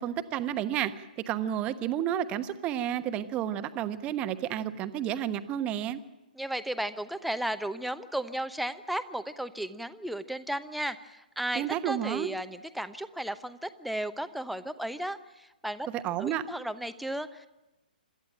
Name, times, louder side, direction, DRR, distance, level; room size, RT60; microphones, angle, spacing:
voice 1, 0.0-6.0 11.5-12.3 15.9-16.4, right 11 dB, 25° right, 11 dB, 1.1 m, -31 dB
voice 2, 6.3-15.9 16.2-17.5, right 1 dB, ahead, 10 dB, 0.9 m, -34 dB
26.5 x 13.5 x 9.0 m, 1.0 s
figure-of-eight pair, 125°, 5 cm